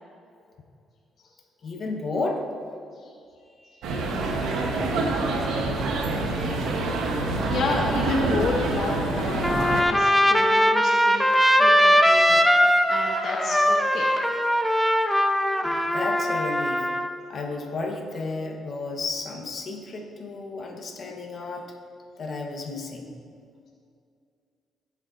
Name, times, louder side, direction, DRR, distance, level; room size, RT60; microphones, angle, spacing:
voice 1, 1.6-2.5 15.6-16.9 17.3-21.7 22.2-23.1, left 3 dB, 50° left, 1 dB, 1.4 m, -32 dB
sound 1, 3.8-9.8, right 2 dB, 85° right, 1.2 m, -26 dB
voice 2, 7.1-11.2 11.6-12.5 12.9-14.2, left 3 dB, 65° left, -2 dB, 1.2 m, -31 dB
Trumpet, 9.4-17.1, equal, ahead, 0.6 m, -20 dB
16.5 x 7.0 x 2.7 m, 2.3 s
cardioid pair, 90°, 0 cm